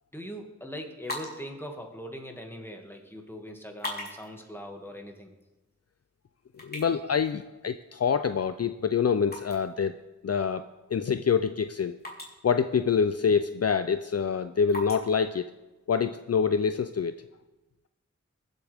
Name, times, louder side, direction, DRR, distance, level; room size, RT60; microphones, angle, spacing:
voice 1, 0.1-5.3, equal, 10° left, 2 dB, 2.1 m, -41 dB
sound 1, 0.9-16.3, left 1 dB, 35° left, 3.7 m, -46 dB
voice 2, 6.6-10.0 10.2-10.6 10.9-11.9 12.4-15.5 15.9-17.1, left 6 dB, 55° left, 11 dB, 0.5 m, -26 dB
22.5 x 8.2 x 3.5 m, 1.1 s
wide cardioid pair, 45°, 29 cm